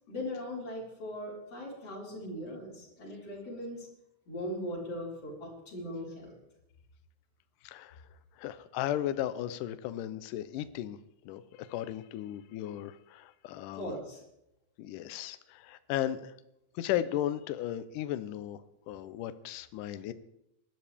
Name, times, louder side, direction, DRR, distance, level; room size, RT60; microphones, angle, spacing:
voice 1, 0.1-3.9 4.3-6.3 13.8-14.2, left 1 dB, 40° left, -4 dB, 5.5 m, -39 dB
voice 2, 7.6-8.0 8.4-11.0 11.3-13.9 14.8-16.3 16.8-18.6 18.9-20.1, left 12 dB, 80° left, 13 dB, 1.9 m, -35 dB
20.0 x 12.5 x 3.5 m, 0.83 s
omnidirectional pair, 4.6 m